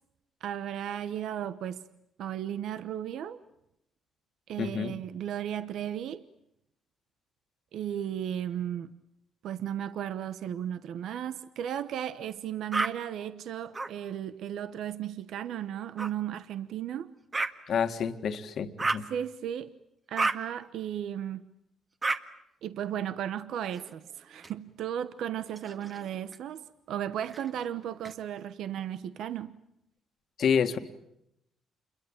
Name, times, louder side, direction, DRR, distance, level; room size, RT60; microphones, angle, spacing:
voice 1, 0.4-1.8 2.2-3.4 4.5-6.2 7.7-9.0 9.4-17.2 19.1-19.7 20.1-21.4 22.6-29.6, right 10 dB, 75° right, 1.0 m, -35 dB
voice 2, 4.6-4.9 17.7-19.0 30.4-30.8, left 7 dB, 65° left, 1.9 m, -28 dB
sound 1, 12.7-12.9 13.7-13.9 16.0-16.1 17.3-17.5 18.8-19.1 20.2-20.4 22.0-22.2 23.7-24.5 25.5-26.4 27.3-28.1, right 3 dB, 30° right, 1.8 m, -32 dB
28.5 x 22.5 x 8.9 m
cardioid pair, 90°, 0 cm